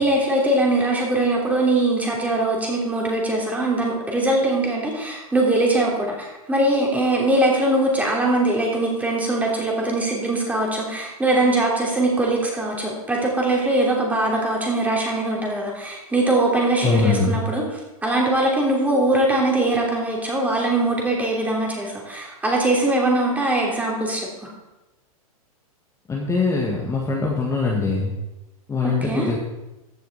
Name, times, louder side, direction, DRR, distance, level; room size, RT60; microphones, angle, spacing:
voice 1, 0.0-17.6 18.0-24.3 28.8-29.3, right 2 dB, 10° right, -2 dB, 3.2 m, -21 dB
voice 2, 16.8-17.4 26.1-28.1 28.7-29.4, left 4 dB, 15° left, -3 dB, 1.8 m, -22 dB
15.0 x 6.4 x 4.1 m, 1.0 s
hypercardioid pair, 115°, 19 cm